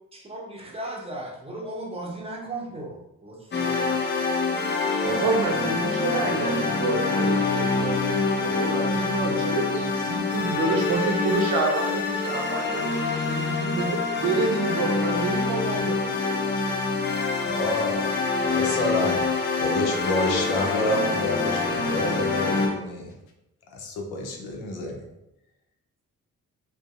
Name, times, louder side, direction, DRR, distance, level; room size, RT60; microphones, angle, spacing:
voice 1, 0.3-4.0, right 1 dB, 15° right, -2 dB, 0.7 m, -36 dB
sound 1, 3.5-22.7, left 4 dB, 30° left, 0.6 m, -26 dB
voice 2, 5.0-16.8, right 3 dB, 65° right, 1 dB, 0.6 m, -28 dB
voice 3, 17.4-18.1 18.4-19.3 19.6-23.1 23.7-25.1, left 2 dB, 75° left, 1 dB, 0.6 m, -28 dB
2.6 x 2.0 x 2.4 m, 0.89 s
hypercardioid pair, 40°, 38 cm